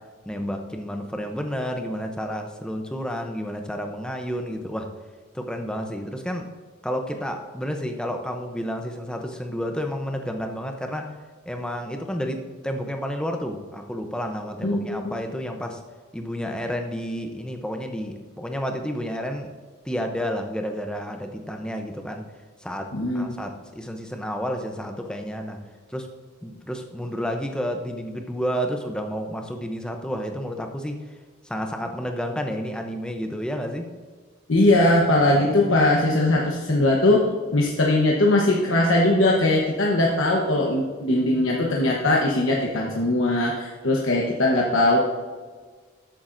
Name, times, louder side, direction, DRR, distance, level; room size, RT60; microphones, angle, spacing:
voice 1, 0.3-4.9 5.3-6.5 6.8-11.0 11.5-15.8 16.1-19.5 19.8-22.3 22.6-22.9 23.1-25.6 25.9-26.1 26.4-31.0 31.4-33.9, equal, 5° left, 4 dB, 0.6 m, -30 dB
voice 2, 14.6-15.2 22.9-23.3 34.5-45.0, left 1 dB, 75° left, -2 dB, 1.0 m, -20 dB
13.0 x 8.5 x 2.6 m, 1.5 s
head